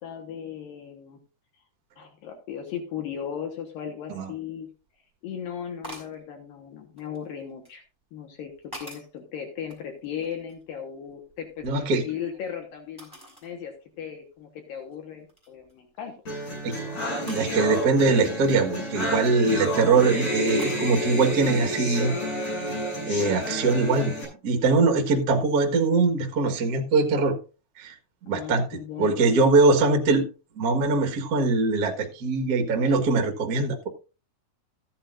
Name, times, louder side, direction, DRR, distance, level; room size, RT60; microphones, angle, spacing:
voice 1, 0.0-1.2 2.0-4.7 5.2-7.8 8.1-8.5 8.8-13.1 13.4-16.1 28.3-29.7, left 8 dB, 70° left, 4 dB, 2.8 m, -37 dB
sound 1, 5.8-6.2 7.0-7.8 8.4-9.2 9.6-10.7 11.0-12.3 13.0-13.5 14.0-14.1 14.7-14.9 15.3-15.7 17.3-17.5 19.2-19.7 20.6-20.9, right 1 dB, 5° left, 3.8 m, -45 dB
voice 2, 11.6-12.0 16.6-16.7 17.2-22.1 23.1-24.1 24.4-27.4 27.8-27.9 28.2-30.2 30.5-33.9, right 3 dB, 75° right, 3 dB, 0.8 m, -22 dB
sound 2, 16.3-24.2, equal, 55° left, 8.0 m, -30 dB
14.5 x 10.0 x 2.5 m, 0.33 s
omnidirectional pair, 4.4 m